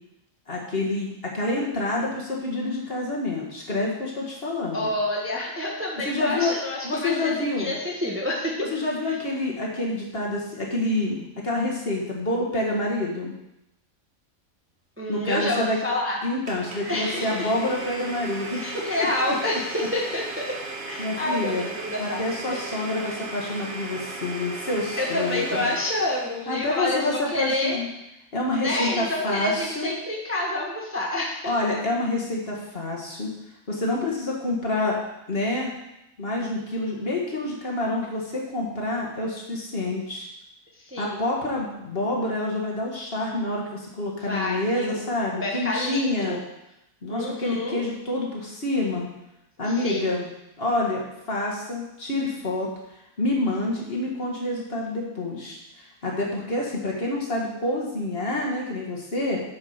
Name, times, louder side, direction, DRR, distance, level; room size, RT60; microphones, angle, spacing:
voice 1, 0.5-4.9 6.1-6.5 6.8-7.7 8.7-13.3 15.1-15.8 16.2-19.1 21.0-21.7 22.0-25.7 26.5-27.9 28.3-29.9 31.4-33.3 33.7-35.0 35.3-35.7 36.2-40.3 41.0-46.4 47.0-49.1 49.6-50.3 50.6-51.0 51.3-52.7 53.2-59.4, left 2 dB, 45° left, -2 dB, 1.8 m, -27 dB
voice 2, 4.7-8.6 9.1-9.2 15.0-16.2 16.9-17.5 18.6-20.5 20.8-22.2 22.5-22.6 23.0-23.2 25.0-27.8 28.5-31.5 40.8-41.2 44.2-45.0 45.4-46.4 47.1-47.8 49.6-50.2, left 1 dB, 10° right, -2 dB, 1.0 m, -28 dB
Domestic sounds home sounds, 16.5-26.4, right 2 dB, 50° right, 1.7 m, -36 dB
8.6 x 5.2 x 5.6 m, 0.87 s
omnidirectional pair, 1.4 m